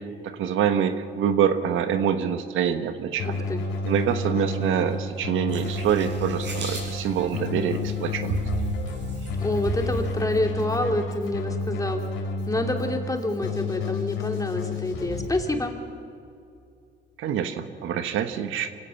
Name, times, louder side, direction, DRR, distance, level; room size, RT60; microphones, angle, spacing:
voice 1, 0.0-3.4 3.8-8.4 17.2-18.7, right 8 dB, 85° right, 9 dB, 1.3 m, -25 dB
Keyboard (musical), 3.2-15.3, left 3 dB, 90° left, 4.5 m, -31 dB
voice 2, 3.2-3.6 9.4-12.0 12.5-15.7, left 2 dB, 15° left, 3 dB, 2.9 m, -27 dB
sound 1, 5.5-10.2, right 4 dB, 65° right, 7.8 m, -34 dB
26.5 x 16.5 x 7.1 m, 2.5 s
cardioid pair, 90°, 20 cm